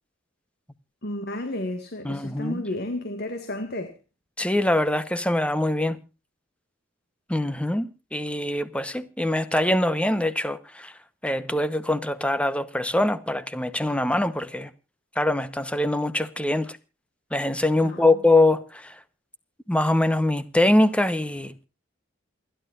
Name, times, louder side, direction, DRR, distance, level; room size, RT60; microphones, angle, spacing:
voice 1, 1.0-4.0 17.8-18.1, left 1 dB, 50° left, 1.9 m, -32 dB
voice 2, 2.0-2.6 4.4-6.0 7.3-11.0 11.2-14.7 15.2-16.8 17.3-19.0 19.7-21.7, left 1 dB, 5° left, 0.9 m, -23 dB
28.0 x 11.5 x 2.5 m
head